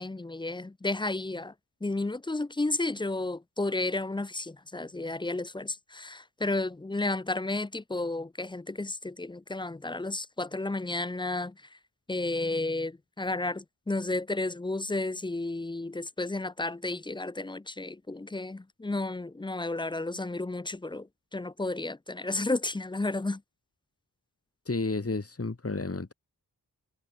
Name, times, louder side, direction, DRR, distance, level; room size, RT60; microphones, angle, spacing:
voice 1, 0.0-1.5 1.8-11.5 12.1-21.1 21.3-23.4, left 2 dB, 10° left, 0.5 m, -32 dB
voice 2, 24.7-26.1, left 3 dB, 35° left, 4.0 m, -31 dB
cardioid pair, 45°, 42 cm